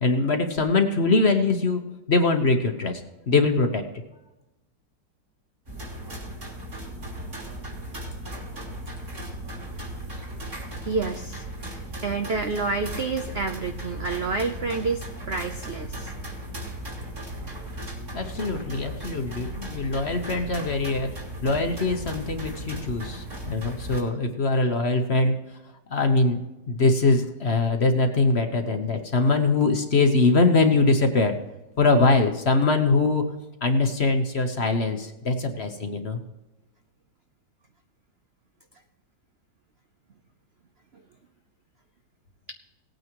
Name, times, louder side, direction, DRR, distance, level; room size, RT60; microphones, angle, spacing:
voice 1, 0.0-1.8 2.1-3.0 3.3-3.8 18.1-21.2 21.4-25.3 25.9-26.4 26.7-31.4 31.8-33.3 33.6-36.2, left 3 dB, 40° left, 5 dB, 1.1 m, -22 dB
sound 1, 5.7-24.0, right 1 dB, 40° right, 3.3 m, -36 dB
voice 2, 10.8-16.1 17.4-17.7 40.9-41.0 42.5-42.6, right 4 dB, 60° right, 6 dB, 0.6 m, -29 dB
18.5 x 9.2 x 3.0 m, 1.0 s
omnidirectional pair, 2.0 m